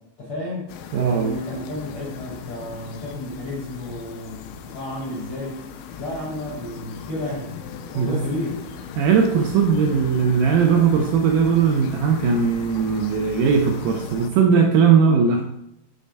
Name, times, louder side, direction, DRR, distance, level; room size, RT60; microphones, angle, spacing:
voice 1, 0.2-0.7 1.1-5.6 6.0-7.5 7.9-8.6, left 1 dB, 60° left, -5 dB, 1.1 m, -31 dB
sound 1, 0.7-14.3, left 7 dB, 85° left, 2.4 m, -38 dB
voice 2, 0.9-1.4 8.0-8.2 9.0-15.4, right 6 dB, 80° right, 3 dB, 1.8 m, -19 dB
6.4 x 3.4 x 5.2 m, 0.81 s
omnidirectional pair, 4.1 m